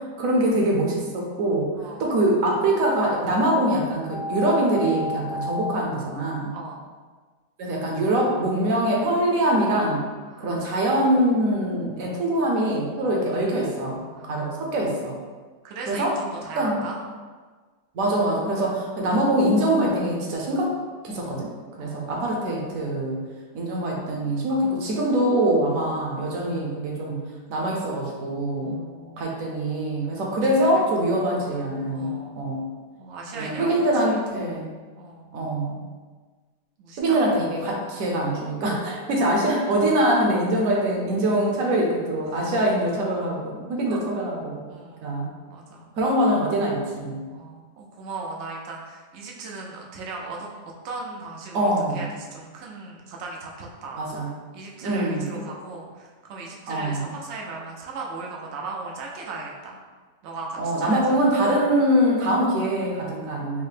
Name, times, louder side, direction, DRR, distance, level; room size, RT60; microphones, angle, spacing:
voice 1, 0.2-1.7 2.0-6.5 7.6-10.0 10.4-15.2 15.9-16.2 16.6-16.8 17.9-20.7 21.0-21.5 21.8-23.2 23.5-27.2 27.5-28.8 29.2-32.7 33.3-34.7 35.3-35.8 37.0-44.6 45.0-45.3 46.0-47.2 51.5-52.0 54.0-54.3 54.8-55.3 56.7-57.1 60.6-63.6, right 1 dB, 65° right, -1 dB, 0.9 m, -23 dB
voice 2, 1.7-2.2 6.5-6.9 10.2-10.7 14.1-14.9 15.6-17.0 21.8-22.3 28.6-29.4 30.4-30.7 31.9-32.4 33.0-34.2 35.0-35.3 36.8-37.6 39.1-39.4 42.3-42.5 43.8-44.0 44.7-45.1 45.5-45.9 47.3-50.5 50.8-54.0 54.5-59.8 60.2-61.3, right 3 dB, 90° right, -2 dB, 0.6 m, -38 dB
sound 1, 4.1-5.7, left 1 dB, 60° left, 0.9 m, -31 dB
4.5 x 2.0 x 3.3 m, 1.4 s
omnidirectional pair, 1.8 m